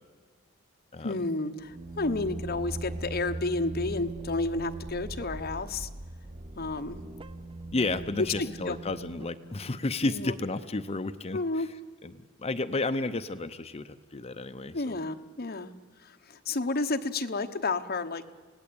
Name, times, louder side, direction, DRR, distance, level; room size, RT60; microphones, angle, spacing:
voice 1, 1.0-5.9 6.5-7.0 8.4-8.8 10.0-10.3 11.3-11.7 14.7-15.7 16.0-18.2, left 3 dB, 50° left, 6 dB, 1.1 m, -31 dB
sound 1, 1.6-10.2, right 2 dB, 25° right, 0.7 m, -40 dB
voice 2, 7.7-11.6 12.0-12.1 12.4-15.0, left 2 dB, 30° left, 11 dB, 0.7 m, -32 dB
28.0 x 18.0 x 8.7 m, 1.5 s
head